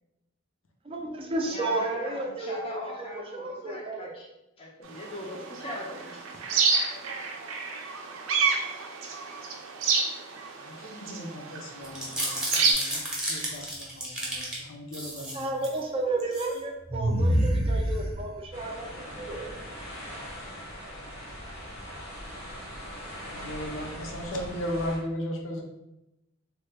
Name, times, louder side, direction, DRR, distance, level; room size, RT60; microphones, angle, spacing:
voice 1, 0.8-4.2 15.3-19.5, right 2 dB, 25° right, 2 dB, 0.4 m, -32 dB
voice 2, 1.4-4.3 4.6-6.2, left 1 dB, 30° left, -2 dB, 0.4 m, -40 dB
sound 1, 4.9-12.7, right 5 dB, 90° right, 0.5 m, -29 dB
voice 3, 10.6-13.0 13.3-15.6 23.3-25.6, equal, 70° left, 2 dB, 0.6 m, -36 dB
sound 2, 11.8-14.6 14.9-15.8 16.2-16.5 16.9-18.5, right 1 dB, 5° right, 0.7 m, -28 dB
sound 3, 18.5-25.0, equal, 90° left, 1.2 m, -41 dB
3.2 x 2.2 x 3.3 m, 0.90 s
head